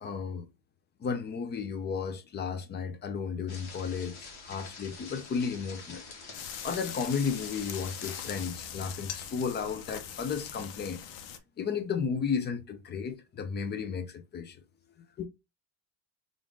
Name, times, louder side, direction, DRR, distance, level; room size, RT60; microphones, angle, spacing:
voice 1, 0.0-0.5 1.0-6.0 6.6-11.0 11.6-14.6 15.2-15.3, left 6 dB, 25° left, 0.4 m, -33 dB
sound 1, 3.5-8.5, left 4 dB, 50° left, 1.4 m, -46 dB
sound 2, 6.3-11.4, left 9 dB, 85° left, 0.8 m, -41 dB
3.6 x 2.5 x 3.6 m
cardioid pair, 130°, 48 cm